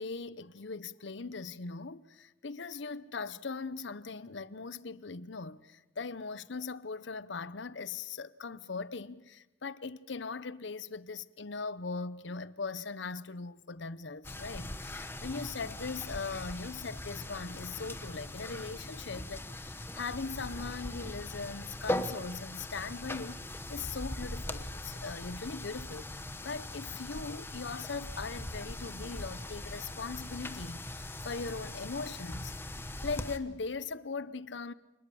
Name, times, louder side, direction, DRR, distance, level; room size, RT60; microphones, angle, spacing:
voice 1, 0.0-32.7 33.0-34.7, left 4 dB, 70° left, 0.8 m, -40 dB
sound 1, 14.2-33.4, left 1 dB, 10° left, 1.1 m, -40 dB
27.5 x 20.5 x 7.1 m
head